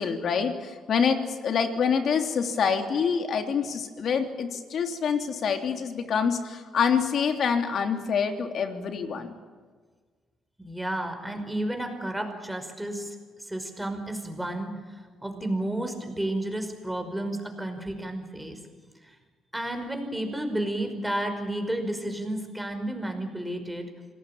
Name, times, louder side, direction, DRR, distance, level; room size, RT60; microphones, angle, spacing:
voice 1, 0.0-9.3, left 6 dB, 60° left, 5 dB, 3.2 m, -26 dB
voice 2, 10.6-18.6 19.0-19.2 19.5-23.9, right 1 dB, 5° right, 5 dB, 5.4 m, -32 dB
26.5 x 18.5 x 9.0 m, 1.5 s
cardioid pair, 90°, 0 cm